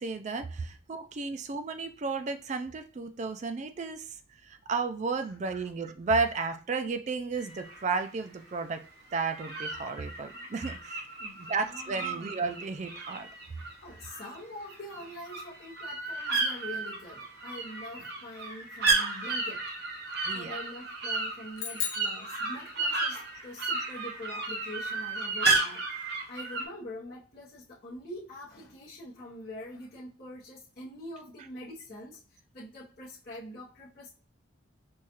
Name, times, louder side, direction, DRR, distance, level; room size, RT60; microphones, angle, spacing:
voice 1, 0.0-4.2 4.4-8.8 9.1-11.1 11.3-13.3 20.2-20.6, right 4 dB, 35° right, 0.3 m, -33 dB
sound 1, 7.4-8.1 9.1-14.4 14.7-26.6, right 3 dB, 50° right, 0.8 m, -33 dB
voice 2, 11.2-12.2 13.8-19.7 20.3-26.0 26.3-32.2 32.5-34.1, left 1 dB, 50° left, 0.8 m, -44 dB
sound 2, 21.6-23.2, left 8 dB, 85° left, 0.9 m, -37 dB
4.5 x 2.3 x 2.9 m
head